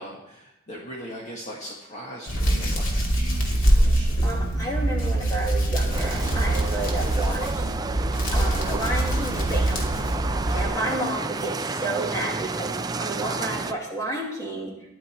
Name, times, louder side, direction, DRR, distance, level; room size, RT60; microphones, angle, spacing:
voice 1, 0.0-4.3, equal, 35° left, -3 dB, 1.7 m, -40 dB
Hands, 2.3-10.7, right 1 dB, 85° left, 2.6 m, -24 dB
voice 2, 4.2-7.6 8.3-10.0 10.5-14.7, right 1 dB, 15° left, -2 dB, 2.9 m, -31 dB
sound 1, 5.9-13.7, right 3 dB, 20° right, 0.5 m, -31 dB
14.0 x 11.0 x 4.4 m, 0.84 s
head